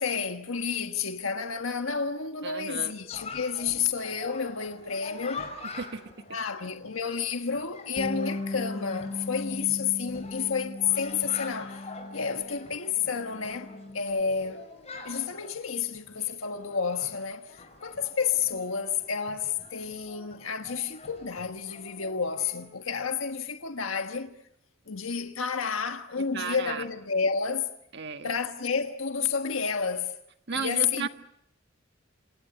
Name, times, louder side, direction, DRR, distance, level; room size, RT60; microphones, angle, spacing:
voice 1, 0.0-5.5 6.3-11.8 12.1-14.6 15.0-17.5 17.8-24.3 24.9-27.7 28.2-30.1 30.5-31.1, left 6 dB, 90° left, 1.4 m, -30 dB
voice 2, 2.4-2.9 5.8-6.0 9.6-9.7 26.2-26.9 27.9-28.3 30.5-31.1, right 5 dB, 55° right, 1.6 m, -34 dB
Chatter, 3.1-22.7, left 3 dB, 35° left, 5.5 m, -46 dB
Bass guitar, 8.0-12.7 13.0-14.2, left 2 dB, 15° left, 1.3 m, -38 dB
28.5 x 27.0 x 6.9 m
head